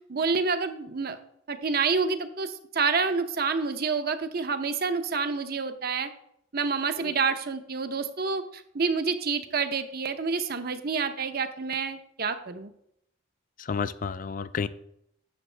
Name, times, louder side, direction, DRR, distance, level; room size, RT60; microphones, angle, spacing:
voice 1, 0.1-1.2 1.5-6.1 6.5-12.7, right 5 dB, 50° right, 9 dB, 0.7 m, -28 dB
voice 2, 13.6-14.7, left 5 dB, 40° left, 14 dB, 0.3 m, -31 dB
10.5 x 7.0 x 3.3 m, 0.74 s
head